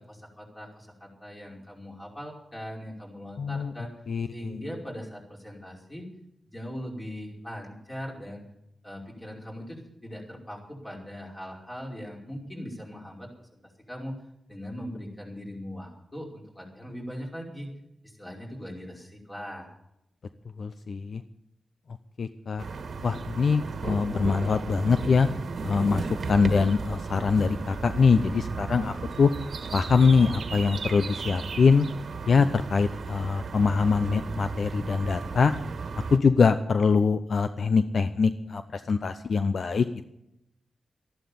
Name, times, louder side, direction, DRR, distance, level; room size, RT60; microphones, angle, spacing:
voice 1, 0.0-3.9 4.3-6.1 6.5-8.4 8.8-13.6 13.9-14.2 14.5-17.7 18.0-19.7, equal, 20° left, -2 dB, 5.2 m, -40 dB
voice 2, 3.4-3.7 4.1-4.5 20.6-21.2 22.2-22.6 23.0-25.3 25.6-26.0 26.3-29.3 29.7-31.9 32.3-35.5 36.1-39.9, left 5 dB, 65° left, 10 dB, 0.7 m, -23 dB
sound 1, 22.6-36.2, right 4 dB, 70° right, 1.5 m, -35 dB
14.0 x 11.5 x 7.1 m, 0.81 s
cardioid pair, 85°, 0 cm